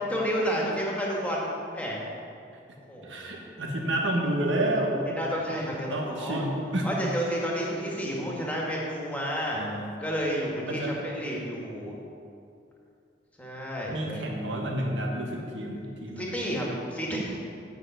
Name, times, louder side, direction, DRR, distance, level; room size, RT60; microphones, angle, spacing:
voice 1, 0.1-2.0 2.9-3.4 5.1-6.4 6.8-9.6 10.0-11.9 13.4-14.2 16.2-17.4, equal, 10° left, -4 dB, 1.8 m, -31 dB
voice 2, 3.0-5.0 5.9-6.9 9.5-9.8 10.6-10.9 13.9-16.6, right 1 dB, 75° right, 0 dB, 1.6 m, -30 dB
8.9 x 5.8 x 7.9 m, 2.5 s
head